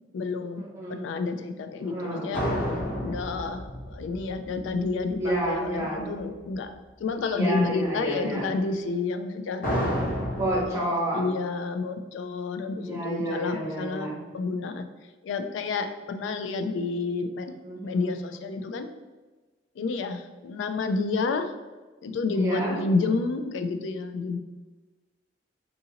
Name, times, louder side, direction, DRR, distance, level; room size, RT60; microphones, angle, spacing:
voice 1, 0.0-0.6 0.9-2.5 3.0-6.7 7.0-9.8 10.7-14.9 15.2-17.5 17.8-18.9 19.8-21.5 22.0-24.4, left 3 dB, 75° left, 8 dB, 0.3 m, -30 dB
voice 2, 0.5-1.0 1.8-2.3 5.2-6.1 7.3-8.5 10.4-11.3 12.8-14.2 17.6-18.4 22.3-22.8, right 1 dB, 15° right, -6 dB, 0.7 m, -30 dB
sound 1, 2.3-5.4 9.6-10.7, equal, 50° left, 0.7 m, -30 dB
3.8 x 2.5 x 2.8 m, 1.3 s
head